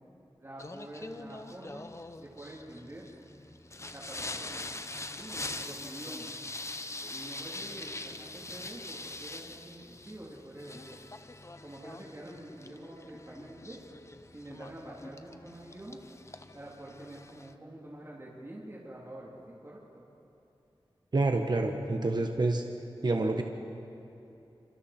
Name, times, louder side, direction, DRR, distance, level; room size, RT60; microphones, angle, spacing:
voice 1, 0.4-1.9 2.2-3.1 3.9-4.7 5.1-6.3 7.1-11.0 11.6-13.8 14.3-16.0 16.5-19.3 19.6-20.0, right 1 dB, 30° right, -5 dB, 3.4 m, -46 dB
Singing, 0.6-17.5, left 2 dB, 30° left, 0.9 m, -43 dB
voice 2, 21.1-22.6 23.0-23.4, right 2 dB, 50° right, 4 dB, 1.4 m, -27 dB
27.0 x 26.5 x 4.5 m, 2.9 s
wide cardioid pair, 70°, 9 cm